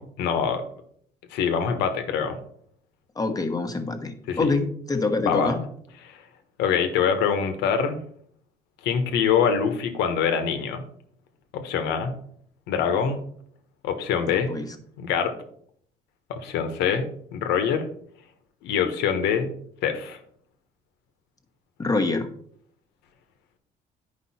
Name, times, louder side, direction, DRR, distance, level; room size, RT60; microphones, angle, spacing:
voice 1, 0.2-0.6 1.3-2.4 4.3-4.5 5.2-5.5 6.0-6.2 6.6-8.0 8.8-10.8 11.5-12.1 12.7-13.2 13.8-14.5 15.0-15.3 16.3-17.1 17.3-17.9 18.6-19.5 19.8-20.2, left 7 dB, 90° left, 7 dB, 1.3 m, -24 dB
voice 2, 3.2-5.6 14.3-14.7 21.8-22.3, left 3 dB, 20° left, 6 dB, 1.2 m, -26 dB
9.9 x 5.2 x 4.3 m, 0.64 s
cardioid pair, 110°, 17 cm